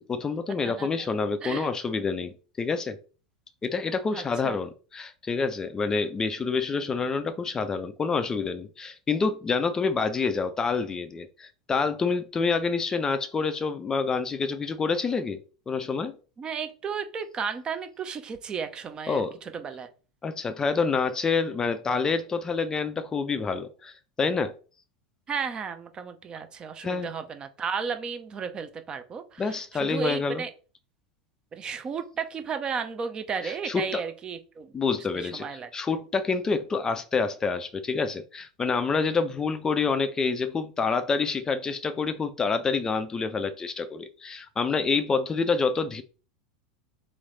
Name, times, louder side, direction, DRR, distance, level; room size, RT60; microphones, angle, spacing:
voice 1, 0.1-3.0 3.6-15.4 15.7-16.1 19.1-19.3 20.2-24.5 26.8-27.1 29.4-30.4 33.4-34.0 34.7-35.5 35.7-46.0, left 4 dB, 20° left, 0.4 m, -27 dB
voice 2, 4.1-4.6 16.4-19.9 25.3-30.5 31.5-34.7 35.2-35.7, right 6 dB, 25° right, 0.6 m, -34 dB
3.2 x 3.1 x 3.9 m
figure-of-eight pair, 85°, 3 cm